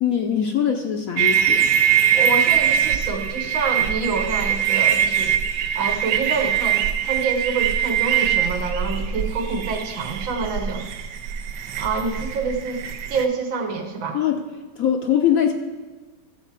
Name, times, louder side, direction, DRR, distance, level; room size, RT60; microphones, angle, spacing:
voice 1, 0.0-1.7 14.1-14.4 14.8-15.5, left 9 dB, 60° left, 4 dB, 0.9 m, -22 dB
sound 1, 1.2-13.3, right 9 dB, 70° right, 1.2 m, -22 dB
voice 2, 2.1-5.4 5.8-10.9 11.8-12.8 13.1-14.2, right 4 dB, 85° right, 3 dB, 1.9 m, -27 dB
13.0 x 4.6 x 7.3 m, 1.3 s
omnidirectional pair, 2.0 m